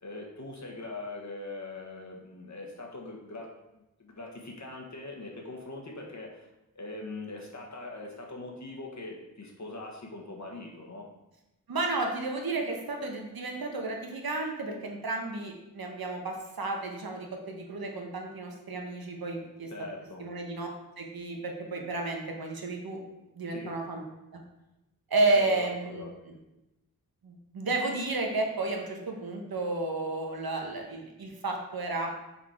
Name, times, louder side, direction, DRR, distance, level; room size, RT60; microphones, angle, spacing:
voice 1, 0.0-3.5 4.0-6.5 6.7-11.1 19.7-20.2 23.5-23.7 25.3-26.1, left 2 dB, 50° left, -1 dB, 1.4 m, -41 dB
voice 2, 11.7-19.7 20.2-20.7 21.0-23.0 23.4-24.0 24.3-24.4 25.1-26.3 27.2-32.1, right 2 dB, 80° right, 2 dB, 1.0 m, -32 dB
5.6 x 4.3 x 4.4 m, 0.95 s
wide cardioid pair, 60°, 36 cm